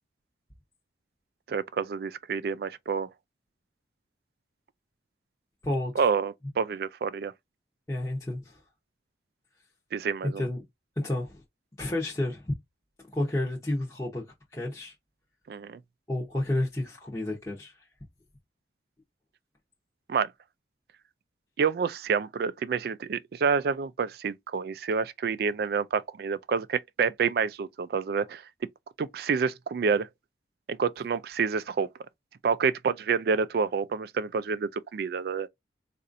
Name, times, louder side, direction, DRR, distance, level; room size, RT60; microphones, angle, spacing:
voice 1, 1.5-3.1 6.0-7.3 9.9-10.4 15.5-15.8 20.1-20.3 21.6-28.4 29.0-30.1 30.7-31.9 32.4-35.5, right 5 dB, 55° right, 0.3 m, -28 dB
voice 2, 5.6-6.1 7.9-8.6 10.2-10.6 11.0-11.4 11.8-12.5 13.1-14.2 14.5-14.9 16.1-17.7, left 1 dB, 20° left, 0.7 m, -30 dB
4.2 x 2.5 x 2.5 m
head